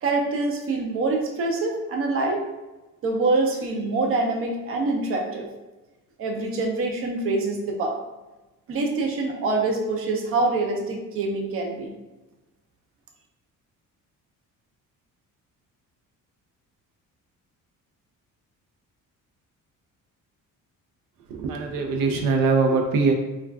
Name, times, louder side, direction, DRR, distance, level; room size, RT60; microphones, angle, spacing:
voice 1, 0.0-2.5 3.0-5.5 6.2-8.0 8.7-11.9, right 3 dB, 40° right, 1 dB, 0.5 m, -25 dB
voice 2, 21.3-23.1, right 4 dB, 90° right, 3 dB, 0.5 m, -22 dB
2.3 x 2.2 x 3.3 m, 1.1 s
cardioid pair, 140°, 33 cm